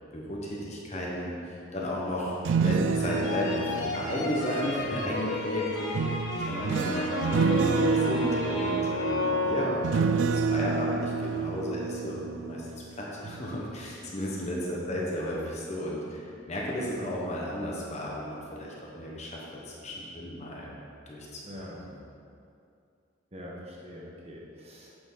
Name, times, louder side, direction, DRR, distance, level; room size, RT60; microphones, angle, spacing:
voice 1, 0.1-12.7 13.0-19.4 19.7-20.7 21.1-21.9, equal, 35° left, -4 dB, 1.2 m, -34 dB
sound 1, 2.3-5.2 5.9-12.9 13.2-13.6, right 5 dB, 80° right, 0.3 m, -29 dB
sound 2, 3.0-10.2, left 2 dB, 80° left, 1.3 m, -32 dB
voice 2, 21.4-21.8 23.3-25.1, left 1 dB, 35° right, -4 dB, 1.4 m, -44 dB
8.5 x 6.9 x 4.0 m, 2.5 s
head